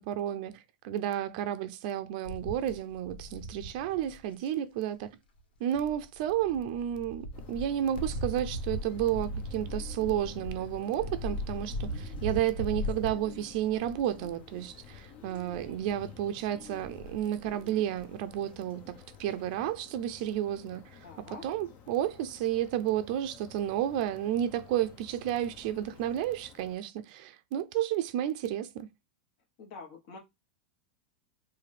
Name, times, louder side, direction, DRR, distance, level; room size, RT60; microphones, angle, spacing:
voice 1, 0.0-5.1 5.6-28.9, right 11 dB, 60° right, 0.5 m, -32 dB
sound 1, 2.2-4.5 5.7-14.3 14.7-15.0 15.3-15.8 16.6-17.5 18.0-18.1 18.3-18.4, equal, 85° left, 1.5 m, -38 dB
sound 2, 7.3-26.8, left 7 dB, 40° left, 0.9 m, -52 dB
voice 2, 21.0-21.5 29.6-30.2, left 4 dB, 55° left, 1.5 m, -46 dB
4.8 x 2.6 x 3.4 m
supercardioid pair, 130°, 5 cm